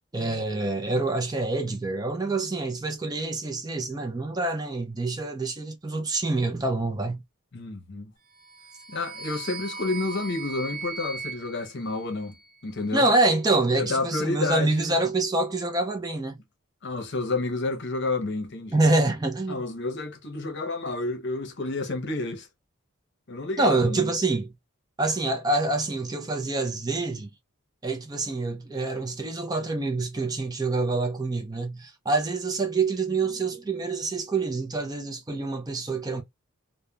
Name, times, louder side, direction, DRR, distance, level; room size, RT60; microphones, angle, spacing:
voice 1, 0.1-7.2 12.9-16.4 18.7-19.6 23.6-24.5 25.0-27.3 27.8-36.2, right 2 dB, 20° right, 0.4 m, -26 dB
voice 2, 7.5-8.1 8.9-12.3 12.6-13.1 13.7-15.0 16.8-18.8 19.5-22.5 23.3-24.1, left 3 dB, 55° left, 0.7 m, -30 dB
sound 1, 8.4-12.7, right 4 dB, 40° right, 0.9 m, -39 dB
3.2 x 2.1 x 2.2 m
head